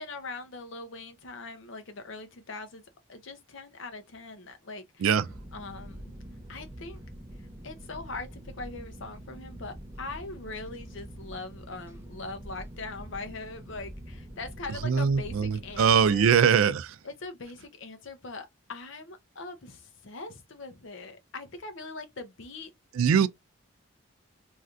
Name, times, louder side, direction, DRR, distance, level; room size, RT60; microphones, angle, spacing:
voice 1, 0.0-2.8 3.1-5.1 5.5-6.1 6.5-7.0 7.6-16.4 17.0-22.7 23.1-23.3, left 3 dB, 65° left, 0.7 m, -41 dB
sound 1, 5.2-16.4, right 1 dB, 10° right, 0.5 m, -45 dB
voice 2, 14.8-17.0 22.9-23.3, right 7 dB, 85° right, 0.4 m, -22 dB
3.2 x 2.7 x 2.4 m
head